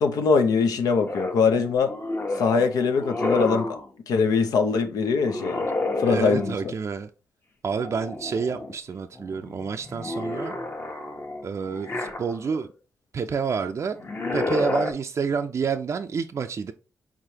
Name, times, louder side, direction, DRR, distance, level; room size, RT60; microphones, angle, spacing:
voice 1, 0.0-1.9 2.3-3.8 4.1-5.6 6.0-6.6, left 5 dB, 80° left, 0.7 m, -22 dB
sound 1, 1.1-3.9 5.2-6.8 7.7-8.7 9.1-12.6 13.9-14.9, left 2 dB, 40° left, 1.2 m, -31 dB
voice 2, 6.1-7.1 7.6-10.6 11.4-12.7 13.1-14.0 14.3-16.7, right 5 dB, 50° right, 0.4 m, -28 dB
4.9 x 3.6 x 2.8 m
supercardioid pair, 45°, 6 cm